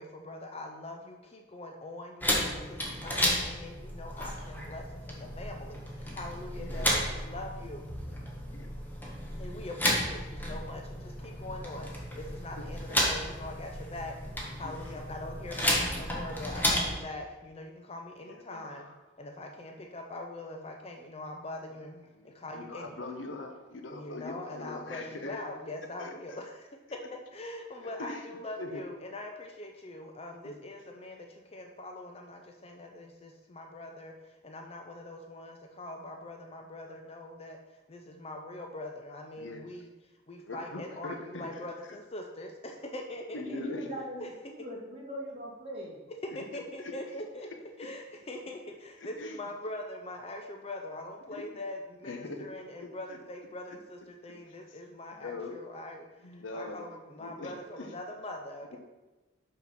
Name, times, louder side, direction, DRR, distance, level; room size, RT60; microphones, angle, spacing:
voice 1, 0.0-7.9 9.3-14.2 14.4-18.9 19.2-23.1 23.9-27.0 27.3-39.9 40.3-43.6 44.2-44.5 46.3-47.5 47.8-58.8, left 1 dB, 30° left, 3 dB, 0.6 m, -42 dB
sound 1, 2.2-17.0, equal, 10° left, 1.4 m, -33 dB
voice 2, 6.6-6.9 8.5-8.7 9.5-9.6 12.6-12.7 14.6-14.8 18.2-19.0 22.2-25.4 26.0-26.4 27.8-28.3 28.6-28.8 30.4-30.6 38.6-38.7 39.4-39.6 40.4-41.7 43.3-43.9 46.5-47.2 49.0-49.4 51.3-51.6 52.0-52.5 52.8-53.2 54.2-54.3 54.7-54.8 55.2-55.5 56.2-56.9 57.2-57.9 58.7-58.8, left 2 dB, 75° left, 5 dB, 0.9 m, -42 dB
voice 3, 43.4-46.0, equal, 30° right, -4 dB, 2.1 m, -40 dB
5.9 x 5.6 x 5.8 m, 1.1 s
head